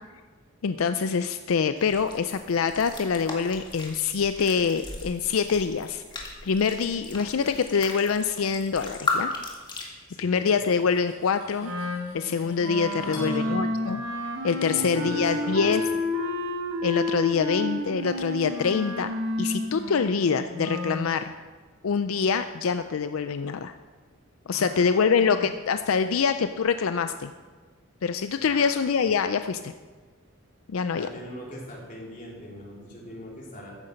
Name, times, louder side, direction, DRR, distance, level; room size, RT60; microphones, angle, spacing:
voice 1, 0.6-9.3 10.2-11.7 12.1-14.0 14.4-15.8 16.8-19.1 19.4-21.3 21.8-23.7 24.5-27.3 28.0-29.7 30.7-31.1, left 5 dB, 85° left, 10 dB, 0.5 m, -25 dB
sound 1, 1.8-9.8, left 2 dB, 20° left, 1.9 m, -36 dB
voice 2, 10.1-10.5 13.0-13.7 14.6-15.9 24.5-25.4 28.4-28.8 30.9-33.7, equal, 40° left, -3 dB, 3.4 m, -40 dB
Cutlery silverware, 10.3-13.4, left 3 dB, 60° left, 4.4 m, -50 dB
Wind instrument woodwind instrument, 11.6-21.1, left 1 dB, 80° right, 1.9 m, -31 dB
14.5 x 9.7 x 5.2 m, 1.5 s
head